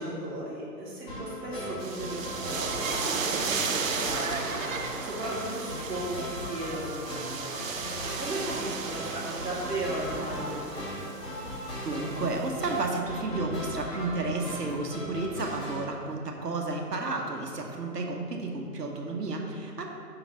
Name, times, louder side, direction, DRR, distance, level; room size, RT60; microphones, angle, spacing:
voice 1, 0.0-4.6 5.0-7.5 8.2-11.1, right 1 dB, 10° right, -8 dB, 1.3 m, -36 dB
sound 1, 1.1-15.8, equal, 15° left, 1.5 m, -38 dB
sound 2, 1.8-13.0, right 5 dB, 55° right, 0.7 m, -35 dB
voice 2, 11.8-19.9, right 3 dB, 80° right, 1 dB, 0.9 m, -32 dB
5.5 x 3.9 x 5.8 m, 2.3 s
figure-of-eight pair, 130°, 48 cm